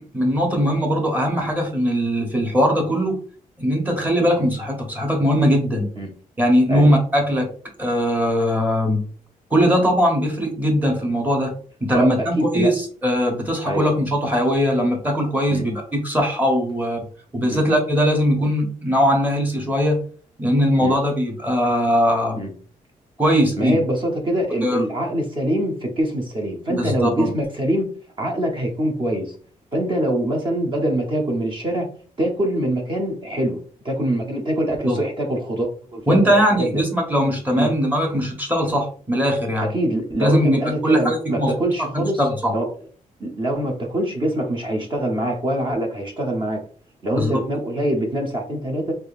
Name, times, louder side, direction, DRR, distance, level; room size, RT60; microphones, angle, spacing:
voice 1, 0.1-3.2 3.6-5.9 6.4-7.5 7.8-9.0 9.5-11.5 11.8-17.0 17.3-20.0 20.4-22.4 23.2-23.8 24.6-24.8 26.7-27.3 34.9-35.0 36.1-39.7 40.2-41.5 41.8-42.5 47.1-47.4, equal, 10° right, 2 dB, 0.9 m, -20 dB
voice 2, 11.9-12.7 13.6-13.8 15.5-15.6 17.5-17.6 20.8-21.0 22.4-22.5 23.6-27.9 28.2-29.3 29.7-31.9 32.2-33.6 33.8-36.8 37.5-37.7 39.6-42.2 42.5-42.7 43.2-46.6 47.0-48.9, right 1 dB, 35° right, 1 dB, 0.8 m, -24 dB
3.6 x 3.1 x 2.4 m, 0.43 s
wide cardioid pair, 145°, 15 cm